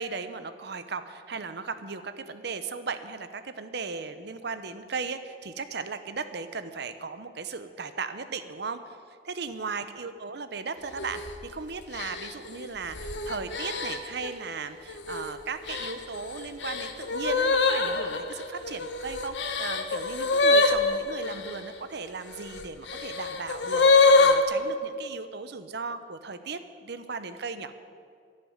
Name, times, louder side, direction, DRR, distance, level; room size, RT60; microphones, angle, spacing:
voice 1, 0.0-9.0 9.2-27.7, right 4 dB, 65° right, 10 dB, 0.9 m, -37 dB
sound 1, 11.0-11.3 11.9-14.3 14.9-15.3 15.7-21.6 22.3-24.4, left 3 dB, 70° left, 1.1 m, -25 dB
11.5 x 10.5 x 9.5 m, 2.2 s
head